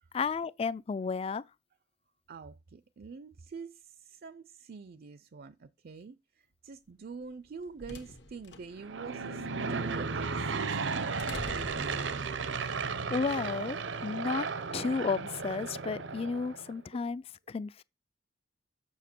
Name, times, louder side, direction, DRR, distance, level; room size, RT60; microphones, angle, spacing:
voice 1, 0.1-1.4 13.1-14.5 14.7-17.8, left 5 dB, 30° left, 0.3 m, -33 dB
voice 2, 2.3-11.1 11.5-12.0, right 5 dB, 55° right, 0.4 m, -46 dB
sound 1, 7.3-12.6, left 2 dB, 70° left, 1.3 m, -48 dB
Aircraft / Engine, 8.7-16.7, right 4 dB, 85° right, 0.8 m, -35 dB
7.2 x 6.5 x 4.4 m
head